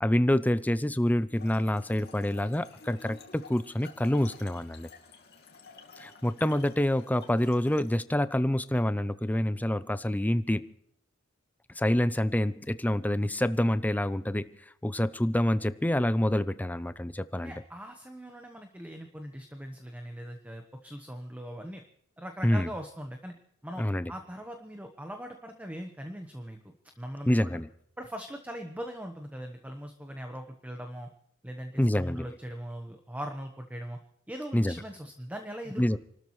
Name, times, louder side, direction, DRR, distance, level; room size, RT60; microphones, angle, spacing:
voice 1, 0.0-4.9 6.0-10.7 11.8-14.6 14.8-17.5 22.4-22.7 23.8-24.1 27.3-27.7 31.8-32.3 34.5-34.8 35.8-36.0, left 1 dB, 10° left, 14 dB, 0.5 m, -27 dB
Trickle dribble / Fill (with liquid), 1.3-8.0, left 5 dB, 50° left, 2.6 m, -51 dB
voice 2, 17.4-21.8 22.2-23.3 23.6-27.6 28.0-31.1 31.4-34.0 34.3-36.0, equal, 10° right, 5 dB, 1.1 m, -41 dB
29.5 x 13.0 x 3.2 m, 0.70 s
head